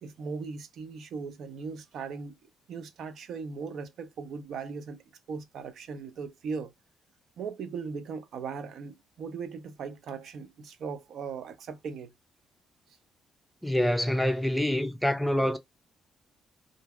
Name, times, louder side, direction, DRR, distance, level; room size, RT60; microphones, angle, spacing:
voice 1, 0.0-2.4 2.7-5.0 5.3-6.7 7.4-12.1, right 5 dB, 70° right, 0.6 m, -38 dB
voice 2, 13.6-15.6, left 1 dB, 5° left, 0.5 m, -26 dB
2.8 x 2.6 x 2.4 m
cardioid pair, 90°, 0 cm